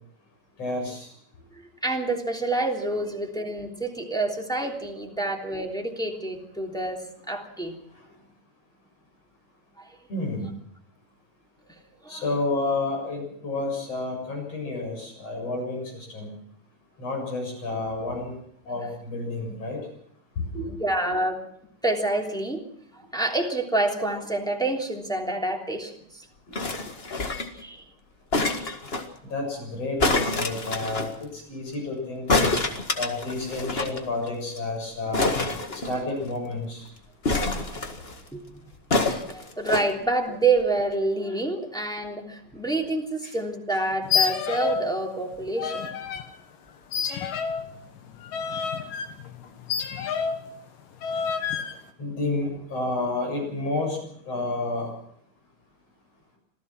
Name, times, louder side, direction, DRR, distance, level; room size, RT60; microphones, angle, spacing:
voice 1, 0.6-1.1 10.1-10.5 12.1-16.3 17.0-18.3 18.7-19.8 20.5-20.6 29.3-32.3 33.0-35.3 35.8-36.8 43.2-43.3 52.0-54.0 54.3-55.0, left 2 dB, 45° left, 2 dB, 8.5 m, -30 dB
voice 2, 1.5-7.8 9.8-10.0 12.0-12.2 20.7-21.4 21.8-22.6 22.9-26.2 27.6-27.8 37.3-37.9 38.3-38.4 39.3-45.9 48.8-48.9, right 2 dB, ahead, 0 dB, 2.8 m, -28 dB
sound 1, 26.5-27.6 28.3-29.1 30.0-31.1 32.3-34.0 34.3-34.4 34.6-34.7 35.1-36.3 37.2-38.2 38.9-39.9 40.6-40.7, left 2 dB, 30° left, 1.2 m, -26 dB
sound 2, 44.0-44.9 45.2-46.3 46.9-50.5 51.0-51.8, left 6 dB, 90° left, 3.3 m, -29 dB
26.5 x 16.0 x 6.1 m, 0.67 s
omnidirectional pair, 3.8 m